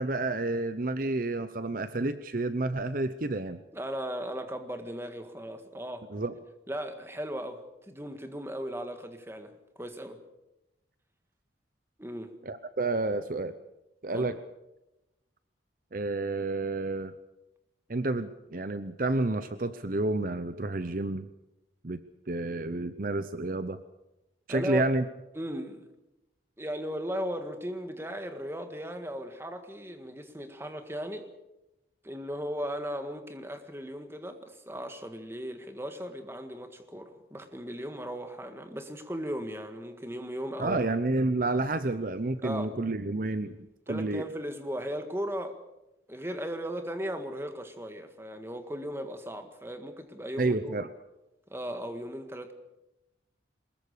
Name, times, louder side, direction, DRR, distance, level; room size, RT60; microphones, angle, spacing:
voice 1, 0.0-3.6 6.1-6.4 12.4-13.5 14.0-14.4 15.9-17.1 17.9-21.3 21.8-22.0 22.3-23.8 24.5-25.0 40.6-44.3 50.4-50.9, right 2 dB, 45° right, 12 dB, 0.8 m, -30 dB
voice 2, 3.7-6.1 6.7-10.2 12.0-12.3 14.1-14.4 24.5-24.9 25.4-25.9 26.6-31.3 32.0-40.9 41.9-42.0 42.4-42.8 43.9-45.6 46.1-50.8 51.5-52.5, equal, 15° right, 7 dB, 1.8 m, -37 dB
23.0 x 21.0 x 6.7 m, 0.95 s
head